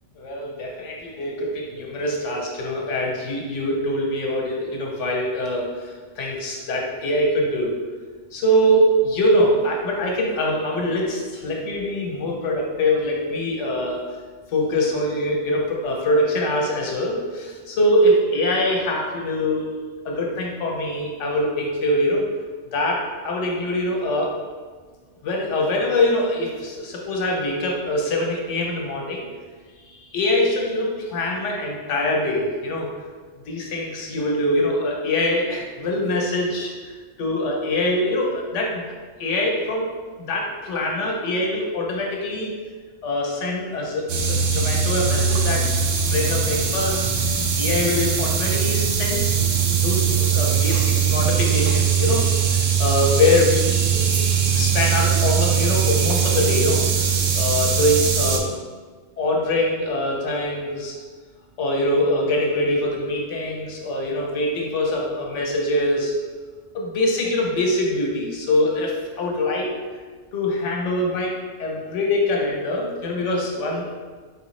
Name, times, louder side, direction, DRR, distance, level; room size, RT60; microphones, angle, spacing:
voice 1, 0.2-7.7 8.3-14.0 14.5-19.7 20.0-22.3 22.7-24.3 25.2-29.3 29.9-32.9 33.5-36.9 37.2-38.9 39.2-42.5 43.0-45.7 46.1-47.0 47.6-49.4 49.7-53.8 54.5-57.1 57.3-58.5 59.2-61.0 61.6-66.1 66.7-69.7 70.3-73.8, left 1 dB, 70° left, -1 dB, 1.1 m, -23 dB
sound 1, 44.1-58.4, right 7 dB, 80° right, 0.9 m, -21 dB
4.1 x 3.2 x 3.1 m, 1.5 s
omnidirectional pair, 1.3 m